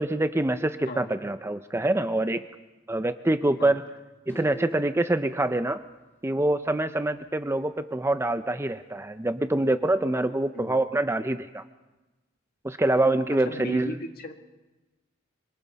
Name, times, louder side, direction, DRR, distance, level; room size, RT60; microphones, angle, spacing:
voice 1, 0.0-2.4 2.9-3.8 4.3-5.8 6.2-11.6 12.6-14.0, right 1 dB, 15° right, 10 dB, 0.6 m, -25 dB
sound 1, 4.3-5.0 6.7-6.8 7.1-7.2 7.6-7.7 8.2-8.3 9.1-9.9, left 2 dB, 10° left, 4.3 m, -43 dB
voice 2, 13.4-14.3, left 2 dB, 50° left, 4 dB, 1.9 m, -36 dB
25.5 x 24.0 x 4.2 m, 1.1 s
head